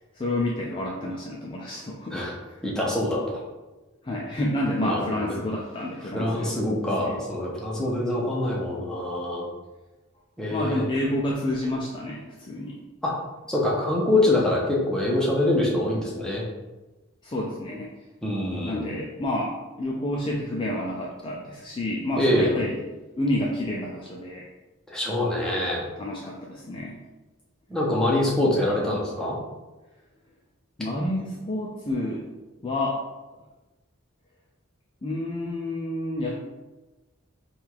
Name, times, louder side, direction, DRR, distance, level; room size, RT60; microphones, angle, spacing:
voice 1, 0.2-2.2 2.4-2.6 4.0-6.6 7.0-7.2 10.5-12.8 17.2-17.9 18.6-22.8 23.2-24.5 26.0-27.0 30.8-32.2 32.6-33.0 35.0-36.4, left 1 dB, 25° left, -3 dB, 0.4 m, -29 dB
voice 2, 2.6-3.4 4.8-5.4 6.1-9.4 10.4-10.8 13.0-13.1 13.5-16.4 18.2-18.9 22.2-22.6 24.9-25.9 27.7-29.4, left 1 dB, 5° left, -5 dB, 0.8 m, -25 dB
3.5 x 2.4 x 4.4 m, 1.1 s
head